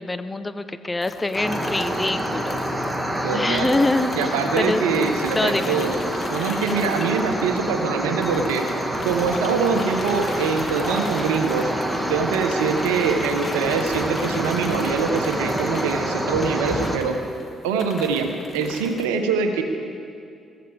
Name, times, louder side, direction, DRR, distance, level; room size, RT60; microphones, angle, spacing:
voice 1, 0.0-2.9 3.3-5.9, left 2 dB, 20° left, 10 dB, 0.9 m, -25 dB
sound 1, 1.0-7.9 8.2-19.1, left 3 dB, 45° left, 2.0 m, -38 dB
sound 2, 1.3-17.0, right 1 dB, 5° right, 2.0 m, -27 dB
voice 2, 3.2-3.7 4.1-5.9 6.3-8.8 9.0-11.7 12.1-17.2 17.6-19.6, right 5 dB, 75° right, 6 dB, 1.0 m, -24 dB
23.0 x 15.0 x 3.5 m, 2.5 s
figure-of-eight pair, 45°, 0 cm